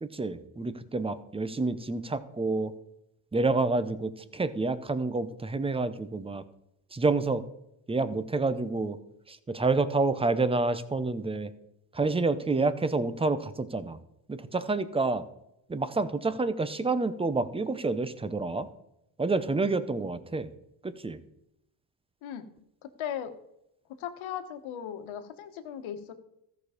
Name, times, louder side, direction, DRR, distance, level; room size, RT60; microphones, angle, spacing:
voice 1, 0.0-2.7 3.3-6.4 6.9-7.4 7.9-9.0 9.3-11.5 11.9-14.0 14.3-15.2 15.7-18.7 19.2-20.5 20.8-21.2, right 3 dB, 10° right, 14 dB, 0.7 m, -28 dB
voice 2, 22.2-22.5 22.8-23.3 24.0-26.1, left 9 dB, 75° left, 8 dB, 1.4 m, -37 dB
14.0 x 6.4 x 5.0 m, 0.82 s
cardioid pair, 110°, 48 cm